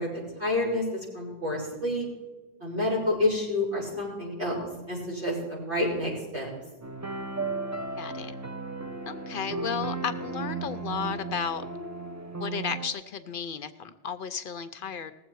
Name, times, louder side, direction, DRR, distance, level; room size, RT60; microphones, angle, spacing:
voice 1, 0.0-2.1 2.6-6.5, left 1 dB, 80° right, -7 dB, 5.5 m, -29 dB
sound 1, 6.8-12.9, right 3 dB, 25° right, 0.4 m, -35 dB
voice 2, 8.0-8.3 9.1-11.6 12.4-15.1, left 7 dB, 60° left, 12 dB, 0.7 m, -33 dB
19.0 x 7.7 x 4.6 m, 1.2 s
omnidirectional pair, 1.1 m